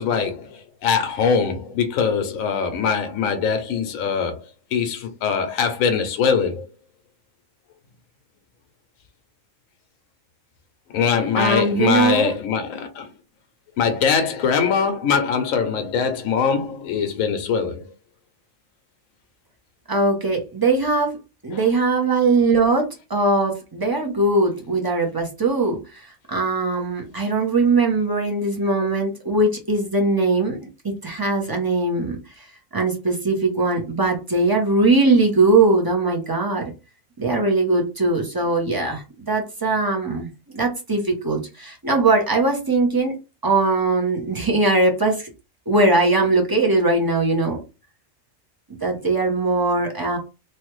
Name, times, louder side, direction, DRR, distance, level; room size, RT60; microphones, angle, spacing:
voice 1, 0.0-4.5 4.7-6.7 10.9-13.1 13.8-17.8 21.5-21.6, left 6 dB, 75° left, 1.1 m, -22 dB
voice 2, 11.3-12.3 19.9-21.2 21.4-32.5 32.7-36.7 37.2-40.3 40.5-43.1 43.4-45.3 45.7-47.6 48.7-50.2, right 3 dB, 20° right, 0.6 m, -20 dB
3.2 x 2.3 x 3.1 m
omnidirectional pair, 1.5 m